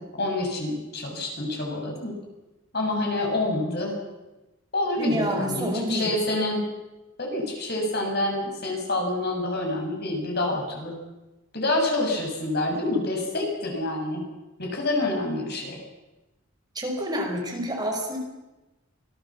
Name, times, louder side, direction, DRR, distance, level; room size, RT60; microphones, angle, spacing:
voice 1, 0.0-2.1 2.7-4.0 4.7-6.6 7.2-11.0 11.5-14.2 14.6-15.8, left 2 dB, 50° left, 2 dB, 6.6 m, -27 dB
voice 2, 5.0-6.1 16.7-18.2, equal, 20° right, 0 dB, 5.2 m, -28 dB
25.5 x 18.0 x 7.4 m, 1.1 s
head